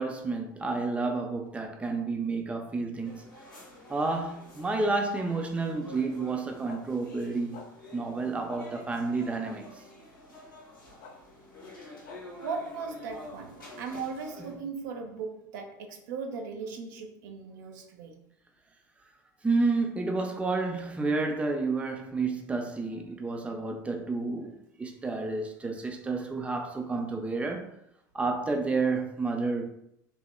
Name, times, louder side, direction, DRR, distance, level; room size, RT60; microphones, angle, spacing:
voice 1, 0.0-3.2 3.9-7.6 7.9-9.7 19.4-27.7 28.1-29.7, right 3 dB, 10° right, 0.4 m, -30 dB
sound 1, 3.0-14.6, left 2 dB, 85° left, 0.7 m, -49 dB
sound 2, 6.7-6.8 7.5-7.7 8.5-8.6 9.4-9.6 11.0-11.1 12.0-12.2, left 5 dB, 60° left, 0.4 m, -46 dB
voice 2, 12.4-18.1, right 5 dB, 70° right, 0.5 m, -38 dB
3.1 x 2.1 x 2.2 m
hypercardioid pair, 75°, 11 cm